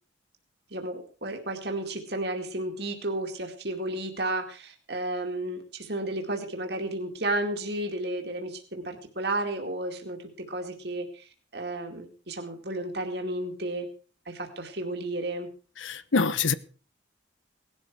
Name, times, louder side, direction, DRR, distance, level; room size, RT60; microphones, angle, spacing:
voice 1, 0.7-10.2 10.5-13.9 14.3-15.5, right 1 dB, 55° right, 2.3 m, -32 dB
voice 2, 15.8-16.5, left 4 dB, 85° left, 1.0 m, -25 dB
18.5 x 12.0 x 4.7 m
head